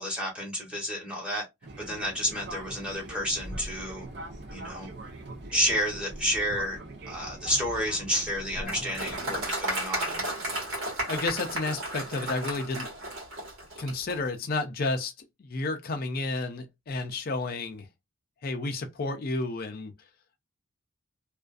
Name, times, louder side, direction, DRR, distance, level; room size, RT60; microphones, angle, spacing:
voice 1, 0.0-1.4 1.8-4.1 4.5-4.9 5.5-6.8 7.1-10.3, equal, 5° right, 1.0 m, -30 dB
Fixed-wing aircraft airplane, 1.6-9.5, right 2 dB, 50° right, 0.6 m, -42 dB
Applause, 8.7-14.2, right 1 dB, 85° right, 1.3 m, -33 dB
voice 2, 11.1-12.9 13.8-15.1 15.4-17.9 18.4-19.9, left 3 dB, 45° left, 0.4 m, -31 dB
2.4 x 2.4 x 2.3 m
head